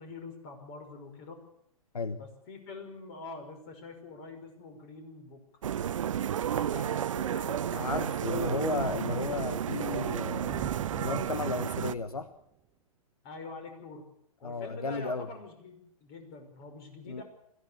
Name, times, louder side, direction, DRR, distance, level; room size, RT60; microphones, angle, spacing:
voice 1, 0.0-1.4 2.2-5.4 6.5-8.0 13.2-14.0 14.4-17.2, left 3 dB, 35° left, 6 dB, 5.7 m, -45 dB
sound 1, 5.6-11.9, right 9 dB, 60° right, 0.8 m, -32 dB
voice 2, 7.7-10.6 11.0-12.3 14.4-15.3 17.0-17.2, left 4 dB, 80° left, 11 dB, 1.3 m, -34 dB
Thunder, 10.1-12.4, right 10 dB, 20° right, 1.1 m, -42 dB
21.0 x 15.5 x 8.5 m, 0.71 s
figure-of-eight pair, 120°, 19 cm